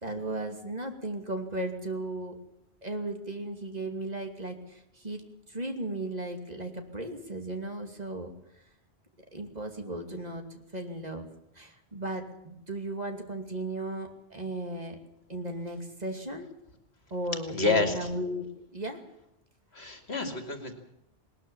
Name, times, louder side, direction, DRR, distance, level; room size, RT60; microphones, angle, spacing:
voice 1, 0.0-2.3 2.8-5.2 5.5-8.3 9.3-11.3 11.5-15.0 15.3-16.5 17.1-19.0, right 1 dB, 40° right, 4 dB, 2.8 m, -36 dB
voice 2, 17.5-17.9 19.7-20.7, left 3 dB, 70° left, 6 dB, 2.7 m, -28 dB
20.0 x 19.5 x 7.2 m, 0.78 s
omnidirectional pair, 1.1 m